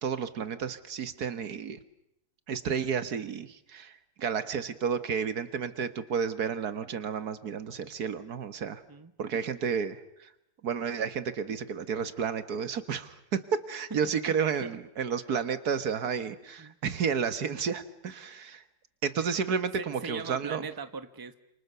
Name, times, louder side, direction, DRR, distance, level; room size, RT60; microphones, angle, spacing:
voice 1, 0.0-1.8 2.5-3.9 4.2-8.8 9.2-10.3 10.6-18.6 19.0-20.6, right 6 dB, 70° right, 12 dB, 1.9 m, -31 dB
voice 2, 14.3-14.8 16.6-16.8 19.8-21.4, right 4 dB, 15° right, 11 dB, 1.1 m, -40 dB
29.5 x 27.5 x 6.8 m, 0.80 s
omnidirectional pair, 1.7 m